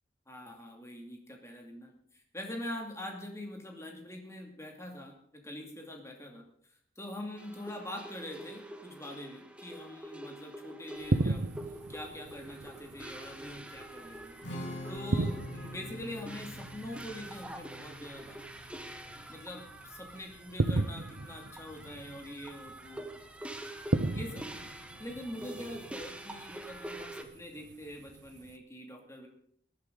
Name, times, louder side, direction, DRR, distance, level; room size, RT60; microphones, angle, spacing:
voice 1, 0.3-6.4 7.0-11.5 11.9-14.4 14.9-18.4 19.3-23.1 24.1-24.5 25.0-29.3, left 1 dB, 15° left, 2 dB, 2.5 m, -44 dB
sound 1, 7.4-27.2, right 1 dB, 5° right, 1.1 m, -46 dB
sound 2, 11.0-28.6, right 2 dB, 70° right, 0.7 m, -37 dB
Strum, 14.4-20.7, left 1 dB, 90° left, 3.1 m, -46 dB
19.0 x 11.0 x 4.0 m, 0.64 s
head